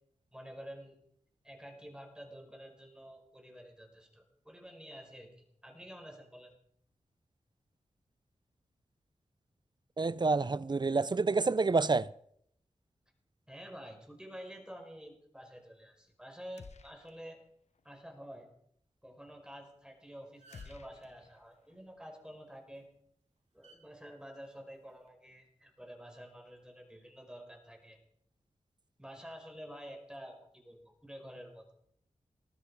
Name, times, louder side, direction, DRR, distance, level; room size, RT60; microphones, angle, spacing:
voice 1, 0.3-1.0 1.4-6.6 13.5-17.4 17.8-18.5 19.0-22.9 23.5-28.0 29.0-31.7, equal, 5° right, 5.2 m, -49 dB
voice 2, 10.0-12.1, right 3 dB, 40° right, 0.7 m, -28 dB
sound 1, 16.6-17.5 17.7-17.9 20.5-21.8, left 5 dB, 70° left, 1.0 m, -53 dB
sound 2, 19.9-20.0 20.2-20.9 22.5-22.8 23.6-23.8 24.8-25.1, right 3 dB, 70° right, 3.6 m, -59 dB
19.5 x 13.0 x 4.9 m
cardioid pair, 45°, 12 cm